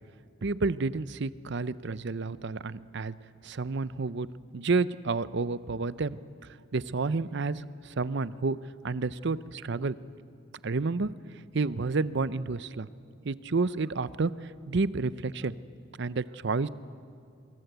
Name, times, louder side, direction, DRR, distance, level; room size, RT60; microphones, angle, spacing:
voice 1, 0.4-3.1 3.4-4.3 4.5-6.2 6.7-8.6 8.8-10.0 10.6-11.1 11.5-12.9 13.2-15.5 16.0-16.7, right 3 dB, 60° right, 16 dB, 0.6 m, -30 dB
25.0 x 23.0 x 8.0 m, 2.5 s
head